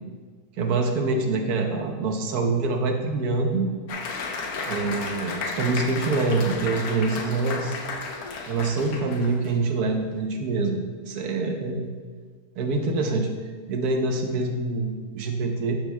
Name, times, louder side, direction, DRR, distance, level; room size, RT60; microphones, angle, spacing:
voice 1, 0.6-3.7 4.6-7.8 8.5-11.9 12.6-13.3 13.7-15.8, right 3 dB, 85° right, 3 dB, 1.4 m, -25 dB
Applause, 3.9-9.6, left 4 dB, 80° left, 1.2 m, -33 dB
12.0 x 6.0 x 2.2 m, 1.5 s
omnidirectional pair, 1.6 m